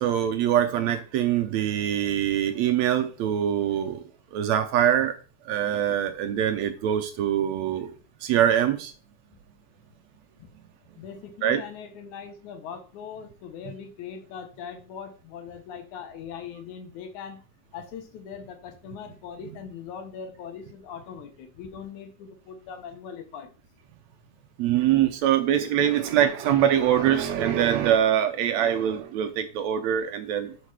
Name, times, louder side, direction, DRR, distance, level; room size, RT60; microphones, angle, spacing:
voice 1, 0.0-4.0 4.3-5.2 5.5-7.9 8.2-8.9 11.4-11.6 24.6-30.5, right 10 dB, 75° right, 8 dB, 1.7 m, -23 dB
voice 2, 11.0-17.4 17.7-23.5, left 7 dB, 75° left, 7 dB, 2.4 m, -40 dB
6.5 x 5.6 x 4.7 m, 0.38 s
omnidirectional pair, 3.6 m